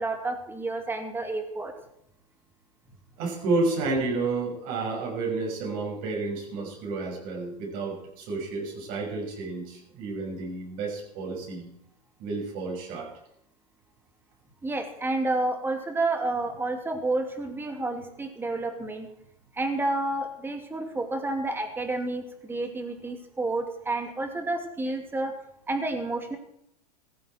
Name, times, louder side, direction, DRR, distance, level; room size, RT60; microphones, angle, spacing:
voice 1, 0.0-1.7 14.6-19.1 19.6-25.3 25.7-26.4, right 2 dB, 10° right, 5 dB, 2.7 m, -30 dB
voice 2, 3.2-11.7 12.2-13.1, right 3 dB, 45° right, 0 dB, 6.8 m, -30 dB
16.0 x 15.0 x 4.6 m, 0.74 s
hypercardioid pair, 120°, 20 cm